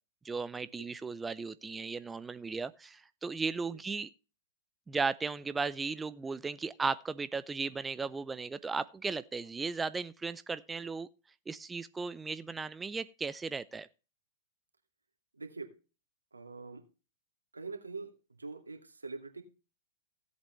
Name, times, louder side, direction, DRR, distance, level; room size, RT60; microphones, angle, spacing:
voice 1, 0.2-4.1 4.9-11.1 11.5-13.9, right 4 dB, 10° right, 0.5 m, -36 dB
voice 2, 15.3-15.7 16.3-16.8 17.5-18.1 18.4-19.4, right 4 dB, 90° right, 2.2 m, -43 dB
16.5 x 8.2 x 3.2 m
figure-of-eight pair, 105°, 0 cm